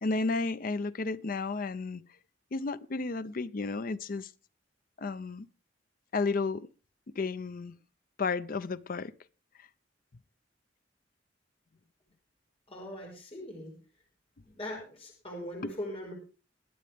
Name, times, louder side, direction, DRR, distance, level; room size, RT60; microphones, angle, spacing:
voice 1, 0.0-2.0 2.5-4.3 5.0-5.5 6.1-6.7 7.2-7.8 8.2-9.1 15.6-15.7, left 3 dB, 50° left, 0.6 m, -32 dB
voice 2, 12.7-13.7 14.6-16.1, left 1 dB, 35° left, 5.0 m, -40 dB
22.0 x 8.8 x 3.5 m
head